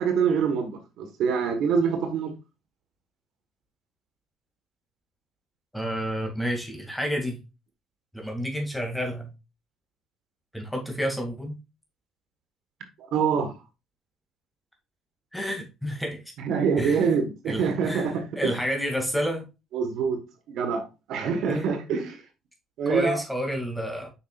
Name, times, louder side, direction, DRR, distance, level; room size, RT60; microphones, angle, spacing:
voice 1, 0.0-2.3 13.1-13.5 16.4-18.5 19.7-20.2 20.5-20.8 21.1-22.2 22.8-23.2, right 6 dB, 70° right, 1.3 m, -25 dB
voice 2, 5.7-7.4 8.1-9.3 10.5-11.6 15.3-16.2 16.8-17.1 17.4-19.5 21.5-21.7 22.9-24.1, equal, ahead, 2.3 m, -30 dB
7.2 x 5.6 x 2.4 m
supercardioid pair, 80°, 0 cm